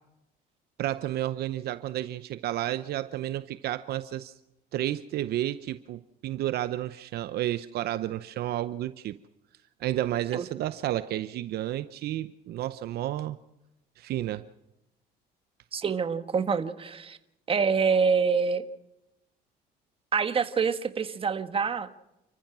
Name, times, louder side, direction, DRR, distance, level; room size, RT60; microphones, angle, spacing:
voice 1, 0.8-4.3 4.7-9.2 9.8-13.4 14.0-14.4, right 13 dB, 70° right, 13 dB, 0.7 m, -31 dB
voice 2, 15.7-17.2 17.5-18.6 20.1-21.9, right 5 dB, 35° right, 10 dB, 1.4 m, -26 dB
29.5 x 15.0 x 6.1 m, 0.92 s
cardioid pair, 110°, 17 cm